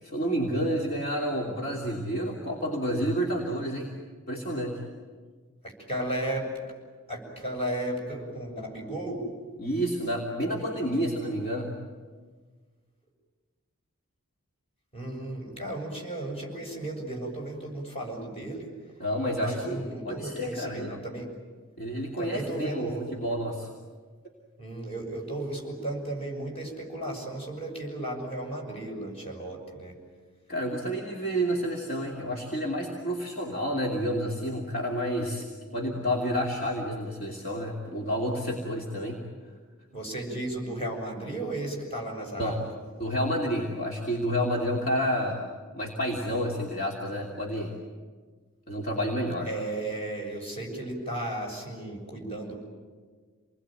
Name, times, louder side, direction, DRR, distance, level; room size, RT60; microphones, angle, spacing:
voice 1, 0.0-3.9 4.3-4.8 9.6-11.7 19.0-21.0 21.8-23.7 30.5-35.4 35.7-39.2 42.4-42.5 43.0-45.4 45.7-47.7 48.7-49.5, equal, 45° left, -2 dB, 3.0 m, -29 dB
voice 2, 5.6-6.7 7.1-9.3 14.9-18.7 19.4-21.3 22.2-23.0 24.6-30.0 39.9-42.6 49.5-52.5, right 1 dB, 30° left, 0 dB, 7.1 m, -34 dB
28.5 x 21.0 x 9.1 m, 1.5 s
head